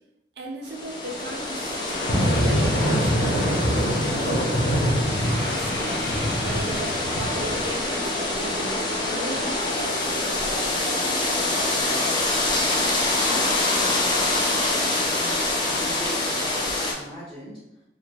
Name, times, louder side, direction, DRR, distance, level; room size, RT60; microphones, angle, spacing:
voice 1, 0.4-1.8 2.2-4.6 5.3-9.8, right 2 dB, 65° right, 2 dB, 0.5 m, -36 dB
sound 1, 0.7-16.9, left 2 dB, 25° left, 0.4 m, -25 dB
sound 2, 1.9-12.5, equal, 70° left, 0.7 m, -27 dB
voice 2, 13.1-14.6 14.8-17.8, equal, 5° left, -12 dB, 0.9 m, -41 dB
3.2 x 2.8 x 2.4 m, 0.87 s
head